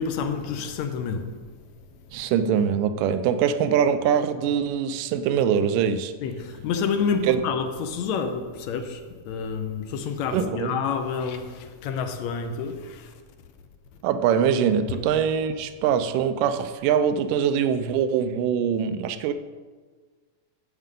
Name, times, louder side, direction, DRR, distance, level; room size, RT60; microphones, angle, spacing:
voice 1, 0.0-1.4 6.2-13.1 14.9-15.0, left 6 dB, 70° left, 1.8 m, -29 dB
voice 2, 2.1-6.1 7.2-7.4 10.3-10.8 14.0-19.3, right 8 dB, 85° right, 2.2 m, -23 dB
13.0 x 8.0 x 3.7 m
omnidirectional pair, 3.8 m